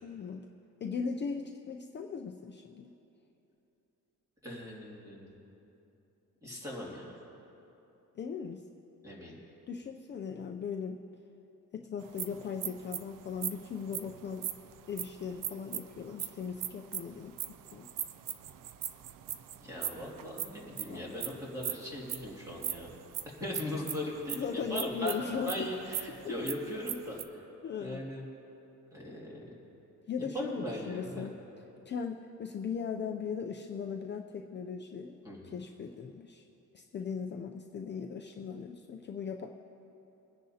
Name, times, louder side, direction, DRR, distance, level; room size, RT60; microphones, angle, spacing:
voice 1, 0.0-0.4 0.8-2.9 8.1-8.6 9.7-11.0 11.7-14.5 14.9-17.3 17.7-17.9 20.9-21.2 24.3-25.7 26.2-26.3 27.6-28.0 30.1-31.4 31.9-35.2 35.4-36.5 36.7-39.5, left 6 dB, 35° left, 3 dB, 0.5 m, -38 dB
voice 2, 4.4-5.3 6.4-7.2 9.0-9.4 19.5-22.9 23.4-27.5 27.8-28.2 28.9-29.5 30.2-31.3 35.2-35.5, left 1 dB, 10° right, -4 dB, 2.4 m, -39 dB
sound 1, 12.0-27.2, right 11 dB, 75° right, 0.6 m, -39 dB
23.5 x 10.0 x 2.8 m, 3.0 s
cardioid pair, 150°, 32 cm